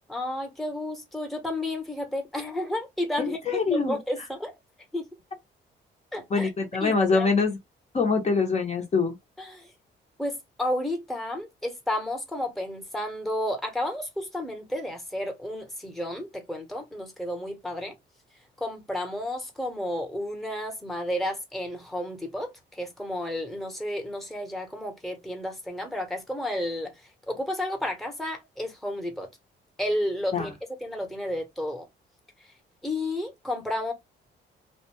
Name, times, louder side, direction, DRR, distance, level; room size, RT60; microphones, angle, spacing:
voice 1, 0.1-4.5 4.9-5.1 6.1-6.5 6.8-7.3 9.4-9.7 10.2-17.9 18.6-29.3 29.8-30.5 30.8-31.9 32.8-33.9, left 1 dB, ahead, 0.9 m, -32 dB
voice 2, 3.2-4.0 6.3-7.6 7.9-9.2 30.3-30.5, left 4 dB, 35° left, 0.8 m, -24 dB
2.5 x 2.1 x 3.0 m
cardioid pair, 90°, 20 cm